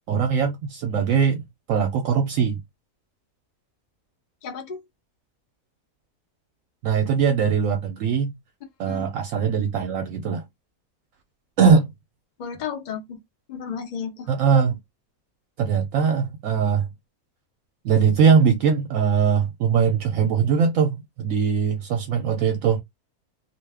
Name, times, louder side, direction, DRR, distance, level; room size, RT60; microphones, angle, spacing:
voice 1, 0.1-1.4 1.7-2.6 6.8-8.3 8.8-10.4 11.6-11.9 14.3-14.8 15.6-16.9 17.8-22.8, right 6 dB, 70° right, 0.9 m, -21 dB
voice 2, 4.4-4.8 8.9-9.0 12.4-13.2 13.5-14.3, left 7 dB, 50° left, 0.5 m, -33 dB
2.5 x 2.2 x 3.3 m
omnidirectional pair, 1.5 m